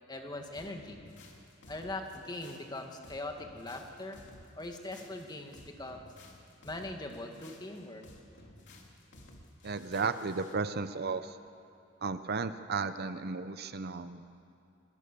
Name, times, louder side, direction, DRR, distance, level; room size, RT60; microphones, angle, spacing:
voice 1, 0.1-1.0 1.7-4.2 4.6-6.1 6.6-8.0, left 2 dB, 20° left, 3 dB, 2.0 m, -41 dB
sound 1, 0.5-10.6, left 1 dB, 60° left, 3.2 m, -55 dB
voice 2, 9.6-11.4 12.0-14.2, right 4 dB, 50° right, 11 dB, 0.7 m, -34 dB
27.0 x 20.0 x 6.9 m, 2.5 s
head